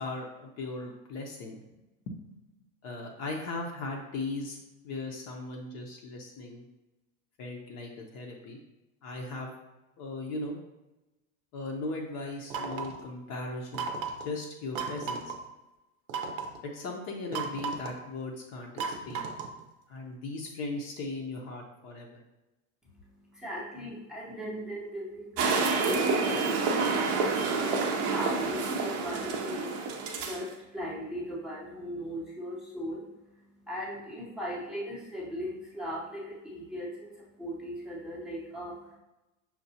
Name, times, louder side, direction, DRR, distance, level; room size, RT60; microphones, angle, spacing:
voice 1, 0.0-1.6 2.1-2.2 2.8-4.6 4.8-6.6 7.4-8.6 9.0-9.6 10.0-10.6 11.5-13.9 14.2-15.3 16.6-19.3 19.9-22.2, left 2 dB, 40° left, 1 dB, 0.7 m, -38 dB
sound 1, 12.5-13.0 13.7-14.3 14.8-15.4 16.1-16.6 17.3-18.0 18.8-19.6, right 5 dB, 80° right, 0.7 m, -35 dB
voice 2, 22.8-39.0, equal, ahead, -5 dB, 0.7 m, -39 dB
sound 2, 25.4-30.4, right 4 dB, 40° right, 0.6 m, -28 dB
5.7 x 2.3 x 2.7 m, 0.99 s
supercardioid pair, 120°, 40 cm